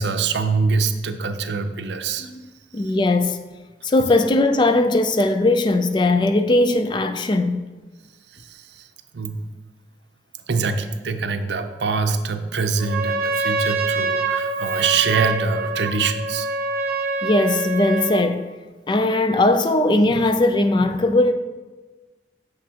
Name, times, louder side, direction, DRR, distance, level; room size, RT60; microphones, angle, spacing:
voice 1, 0.0-2.3 8.3-8.9 9.1-9.4 10.5-16.5, right 4 dB, 80° right, 0.5 m, -24 dB
voice 2, 2.7-3.4 3.8-7.6 17.2-18.5 18.9-21.3, left 2 dB, 25° left, 0.3 m, -19 dB
Trumpet, 12.8-18.3, right 3 dB, 55° right, 0.8 m, -25 dB
8.4 x 6.4 x 2.8 m
head